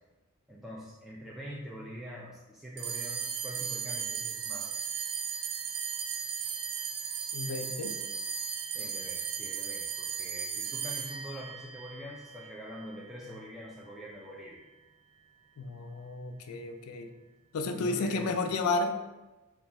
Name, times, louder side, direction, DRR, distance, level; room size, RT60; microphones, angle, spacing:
voice 1, 0.5-4.8 8.7-14.6 17.7-18.4, equal, ahead, -6 dB, 0.4 m, -44 dB
sound 1, 2.8-13.4, right 7 dB, 75° right, 0.3 m, -36 dB
voice 2, 7.3-8.0 15.6-17.1 17.5-19.0, left 3 dB, 85° left, 6 dB, 0.4 m, -32 dB
4.0 x 2.4 x 3.5 m, 1.1 s
head